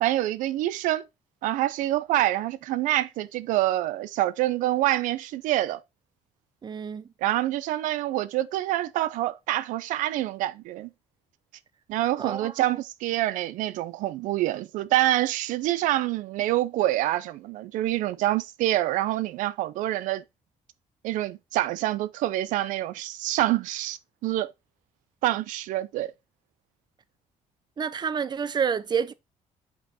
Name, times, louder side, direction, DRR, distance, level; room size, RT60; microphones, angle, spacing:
voice 1, 0.0-1.0 1.4-5.8 7.2-10.9 11.9-20.2 21.0-24.5 25.2-26.1, right 15 dB, 90° right, 0.4 m, -26 dB
voice 2, 6.6-7.0 12.2-12.8 27.8-29.1, right 7 dB, 35° right, 0.6 m, -29 dB
5.5 x 5.3 x 4.1 m
cardioid pair, 90°, 13 cm